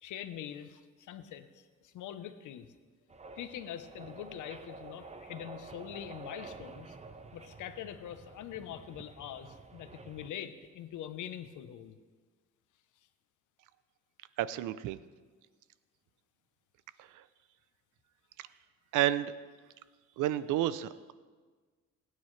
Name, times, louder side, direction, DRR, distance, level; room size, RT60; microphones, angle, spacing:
voice 1, 0.0-2.7 3.4-7.0 7.3-11.9, left 10 dB, 80° left, 10 dB, 1.0 m, -44 dB
sound 1, 3.1-10.3, right 3 dB, 20° right, 0.7 m, -49 dB
voice 2, 14.4-15.0 17.0-17.2 18.9-19.3 20.2-21.1, right 13 dB, 90° right, 15 dB, 0.6 m, -31 dB
22.5 x 9.5 x 3.3 m, 1.4 s
cardioid pair, 90°, 30 cm